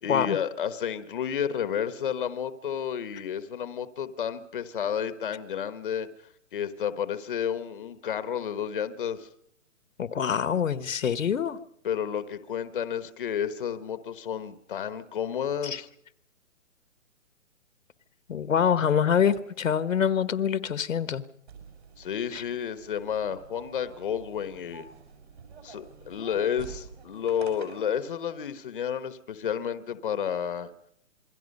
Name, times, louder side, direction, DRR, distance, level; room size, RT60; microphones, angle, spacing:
voice 1, 0.0-6.1 6.5-9.3 11.8-15.9 22.0-24.9 25.6-30.7, left 8 dB, 40° left, 13 dB, 1.2 m, -31 dB
voice 2, 10.0-11.6 15.6-15.8 18.3-21.2 22.3-22.4, left 8 dB, 70° left, 15 dB, 1.4 m, -25 dB
sound 1, 21.5-28.0, right 6 dB, 50° right, 6.0 m, -48 dB
27.5 x 22.0 x 5.4 m, 0.72 s
hypercardioid pair, 175°, 40 cm